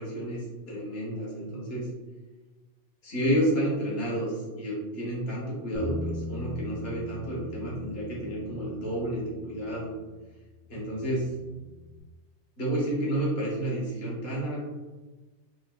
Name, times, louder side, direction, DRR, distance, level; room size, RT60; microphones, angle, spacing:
voice 1, 0.0-1.9 3.0-9.9 10.7-11.3 12.6-14.6, right 1 dB, 55° left, -5 dB, 1.4 m, -30 dB
Bass guitar, 5.7-12.0, left 1 dB, 85° right, 1.0 m, -40 dB
4.1 x 2.6 x 2.2 m, 1.2 s
omnidirectional pair, 1.2 m